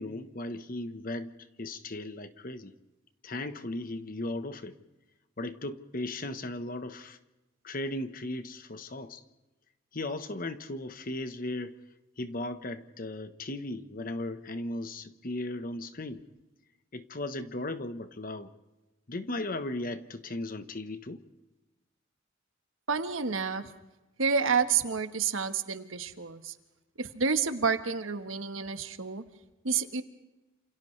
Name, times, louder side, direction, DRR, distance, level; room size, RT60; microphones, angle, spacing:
voice 1, 0.0-2.7 3.2-4.8 5.4-7.2 7.6-9.2 9.9-11.7 12.2-16.2 16.9-18.5 19.1-21.2, left 2 dB, 45° left, 1.2 m, -36 dB
voice 2, 22.9-23.7 24.2-26.5 27.0-29.2 29.6-30.0, right 5 dB, 85° right, 1.4 m, -29 dB
29.0 x 27.5 x 3.3 m
head